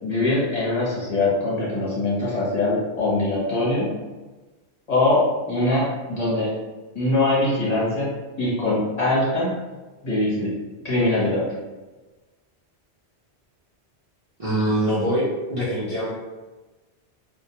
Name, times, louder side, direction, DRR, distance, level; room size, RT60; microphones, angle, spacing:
voice 1, 0.0-3.9 4.9-6.5 6.9-8.1 8.4-9.5 10.0-10.5 10.8-11.4, left 2 dB, 40° left, -8 dB, 0.9 m, -22 dB
voice 2, 14.4-16.1, right 1 dB, 45° right, -10 dB, 0.5 m, -23 dB
2.2 x 2.2 x 2.8 m, 1.2 s
omnidirectional pair, 1.2 m